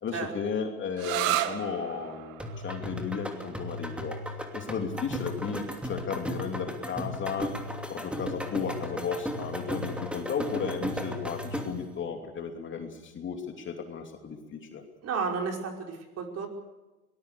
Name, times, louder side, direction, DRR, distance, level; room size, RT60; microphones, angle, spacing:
voice 1, 0.0-4.2 4.5-7.5 7.9-14.8, left 6 dB, 25° left, 4 dB, 2.8 m, -34 dB
sound 1, 1.0-8.4, right 13 dB, 60° right, 2.1 m, -37 dB
sound 2, 2.4-11.9, left 1 dB, 5° right, 2.9 m, -35 dB
voice 2, 15.0-16.5, right 5 dB, 35° right, 3 dB, 5.3 m, -32 dB
24.0 x 20.0 x 6.8 m, 1.1 s
hypercardioid pair, 110°, 44 cm